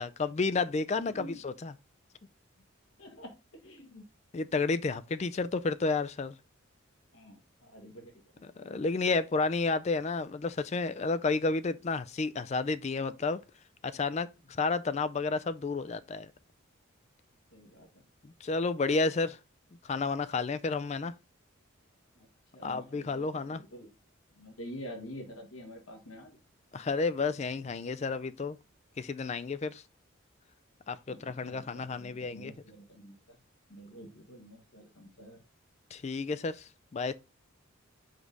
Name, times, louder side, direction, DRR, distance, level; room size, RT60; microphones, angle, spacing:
voice 1, 0.0-1.7 4.3-6.3 8.4-13.4 13.8-16.3 18.2-19.4 19.8-21.1 22.6-23.6 26.7-28.6 29.0-29.8 30.9-32.5 35.9-37.1, left 3 dB, 30° left, 0.3 m, -31 dB
voice 2, 1.1-1.4 3.0-4.1 7.1-8.7 17.5-18.0 22.2-22.3 22.5-23.9 24.3-26.4 31.1-33.4 33.7-35.4, equal, 75° left, 1.7 m, -48 dB
5.1 x 4.9 x 3.9 m
head